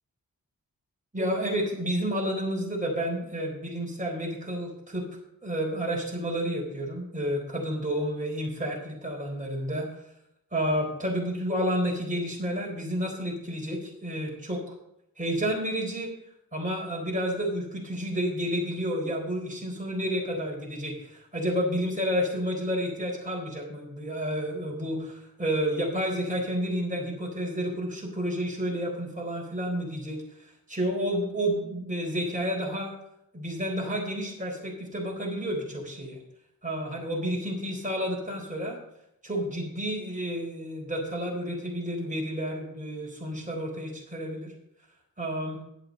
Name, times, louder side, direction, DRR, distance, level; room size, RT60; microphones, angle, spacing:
voice 1, 1.1-5.0 5.4-10.0 10.5-14.7 15.2-16.1 16.5-32.9 33.3-36.2 36.6-38.8 39.2-44.5 45.2-45.6, equal, 20° right, -2 dB, 4.1 m, -30 dB
10.5 x 7.6 x 6.4 m, 0.79 s
wide cardioid pair, 85°, 34 cm